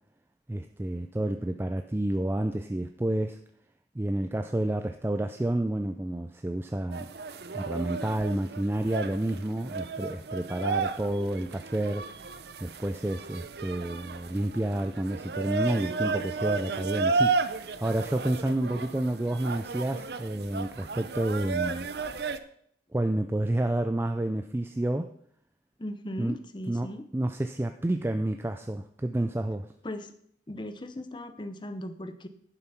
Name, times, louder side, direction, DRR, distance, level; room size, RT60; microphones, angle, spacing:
voice 1, 0.5-3.4 3.9-7.1 7.5-12.3 12.6-21.9 22.9-25.1 26.2-29.7, right 1 dB, 15° right, 7 dB, 0.4 m, -30 dB
sound 1, 6.9-22.4, right 4 dB, 65° right, 0.6 m, -33 dB
voice 2, 25.8-27.1 29.8-30.1 30.5-32.3, left 1 dB, 25° left, 10 dB, 0.8 m, -38 dB
11.0 x 7.0 x 5.8 m, 0.66 s
head